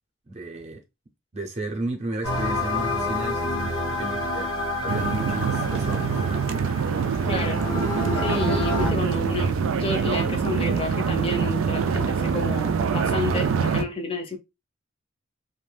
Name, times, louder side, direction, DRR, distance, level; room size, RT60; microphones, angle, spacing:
voice 1, 0.3-0.8 1.3-4.5 4.8-6.2, right 2 dB, 35° right, 0.6 m, -33 dB
sound 1, 2.2-8.9, left 2 dB, 85° left, 0.8 m, -29 dB
sound 2, 4.9-13.8, right 6 dB, 75° right, 0.3 m, -24 dB
voice 2, 7.3-7.6 8.1-14.4, left 3 dB, 30° left, 0.6 m, -30 dB
2.5 x 2.1 x 3.2 m
head